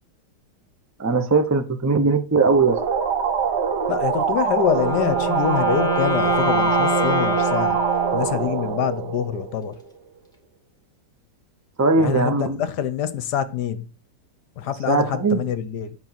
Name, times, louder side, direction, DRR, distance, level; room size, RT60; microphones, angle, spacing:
voice 1, 1.0-2.8 11.8-12.6 14.9-15.5, right 4 dB, 20° right, 0.4 m, -19 dB
sound 1, 2.5-9.9, right 6 dB, 65° right, 2.1 m, -24 dB
voice 2, 3.9-7.8 8.1-9.8 12.0-13.8 14.6-15.9, left 9 dB, 70° left, 1.3 m, -25 dB
Wind instrument woodwind instrument, 4.6-8.8, equal, ahead, 2.1 m, -25 dB
9.6 x 4.3 x 5.8 m
omnidirectional pair, 2.0 m